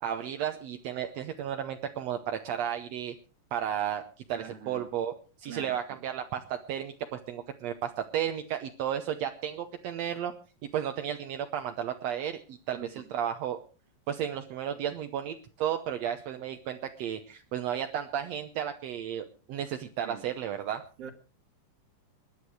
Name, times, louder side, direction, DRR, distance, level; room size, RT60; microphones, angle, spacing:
voice 1, 0.0-3.2 3.5-10.3 10.7-13.6 14.1-20.8, right 9 dB, 70° right, 7 dB, 1.6 m, -33 dB
voice 2, 4.3-4.9 5.4-5.8 12.7-13.0 20.0-20.3 21.0-21.1, right 7 dB, 55° right, 8 dB, 2.2 m, -44 dB
21.0 x 10.5 x 4.7 m, 0.35 s
omnidirectional pair, 4.1 m